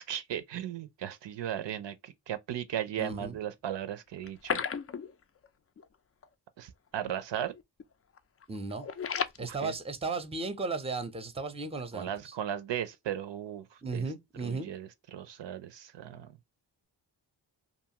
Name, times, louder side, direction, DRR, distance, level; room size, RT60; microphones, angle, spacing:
voice 1, 0.0-4.6 6.6-7.5 9.4-9.7 11.9-13.6 13.9-14.0 14.4-16.3, right 10 dB, 70° right, 0.5 m, -36 dB
voice 2, 3.0-3.4 8.5-8.9 9.4-12.3 13.8-14.7, right 3 dB, 15° right, 0.6 m, -35 dB
sound 1, 4.2-5.5 5.8-5.9 6.2-6.3 6.9-7.2 7.5-7.8 8.2-9.4, left 7 dB, 35° left, 0.4 m, -34 dB
2.6 x 2.4 x 2.8 m
cardioid pair, 65°, 46 cm